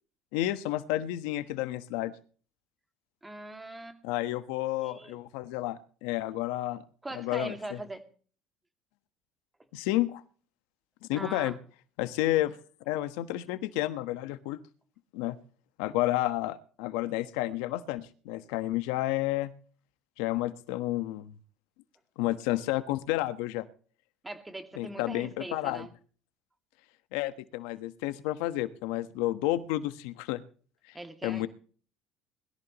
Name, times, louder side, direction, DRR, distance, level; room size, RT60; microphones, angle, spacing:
voice 1, 0.3-2.1 4.0-6.8 7.1-7.8 9.7-10.2 11.1-11.6 12.0-12.6 12.9-14.6 15.1-15.4 15.8-19.5 20.2-21.3 22.2-23.7 24.8-25.9 27.1-30.4 30.9-31.0 31.2-31.5, left 16 dB, 90° left, 12 dB, 1.3 m, -31 dB
voice 2, 3.2-4.0 4.8-5.2 7.0-8.0 11.1-11.6 24.2-25.9 30.9-31.4, right 2 dB, 10° right, 8 dB, 2.4 m, -41 dB
21.0 x 14.0 x 3.1 m, 0.42 s
cardioid pair, 120°, 0 cm